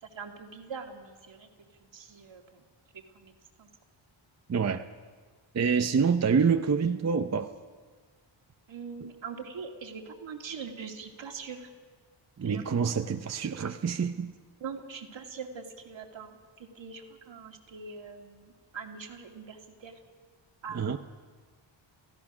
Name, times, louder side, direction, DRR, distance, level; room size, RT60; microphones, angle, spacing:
voice 1, 0.0-1.5 1.9-2.6 3.1-3.7 8.7-11.7 12.4-12.9 14.6-19.9 20.6-21.0, right 5 dB, 70° right, 2 dB, 2.4 m, -43 dB
voice 2, 4.5-4.8 5.5-7.5 12.4-14.3 20.7-21.0, right 6 dB, 35° right, 7 dB, 0.6 m, -26 dB
28.0 x 16.0 x 6.1 m, 1.5 s
wide cardioid pair, 165°, 47 cm